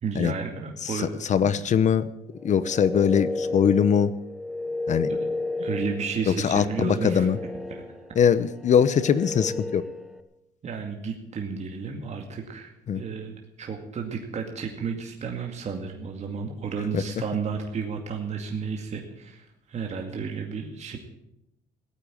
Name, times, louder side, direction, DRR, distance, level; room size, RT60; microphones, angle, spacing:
voice 1, 0.0-1.1 1.4-1.5 5.1-5.3 5.6-7.3 7.7-7.8 10.6-21.0, right 5 dB, 40° right, 2 dB, 2.3 m, -32 dB
voice 2, 0.8-2.1 2.4-4.1 4.9-5.1 6.3-7.4 8.2-9.8 12.9-13.0 16.9-17.0, left 7 dB, 45° left, 16 dB, 0.9 m, -22 dB
sound 1, 2.3-10.2, left 2 dB, ahead, 1.5 m, -33 dB
16.5 x 8.9 x 8.8 m, 0.84 s
cardioid pair, 110°, 17 cm